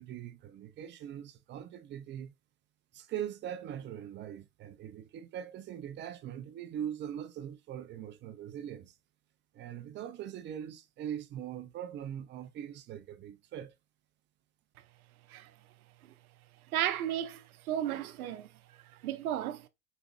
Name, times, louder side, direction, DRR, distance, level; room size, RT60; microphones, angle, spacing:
voice 1, 0.0-2.3 2.9-8.9 9.5-13.7, right 10 dB, 25° right, 0.5 m, -41 dB
voice 2, 16.7-18.5 19.0-19.7, right 11 dB, 75° right, 0.7 m, -34 dB
5.0 x 2.5 x 2.4 m
hypercardioid pair, 100°, 43 cm